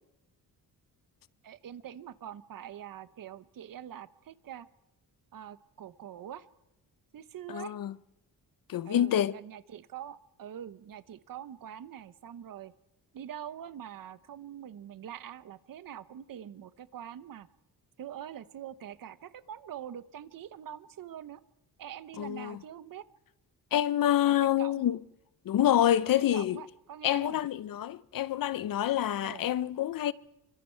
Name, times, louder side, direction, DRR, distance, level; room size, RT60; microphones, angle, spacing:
voice 1, 1.4-4.7 5.3-6.5 7.1-7.7 8.8-12.7 13.1-17.5 18.0-21.4 21.8-23.1 24.2-24.8 26.0-27.4 29.2-29.4, right 10 dB, 60° right, 1.0 m, -44 dB
voice 2, 7.5-7.9 8.7-9.4 22.2-22.6 23.7-25.0 25.5-26.6 27.0-30.1, left 11 dB, 60° left, 0.7 m, -27 dB
28.0 x 24.5 x 4.5 m
wide cardioid pair, 160°, 39 cm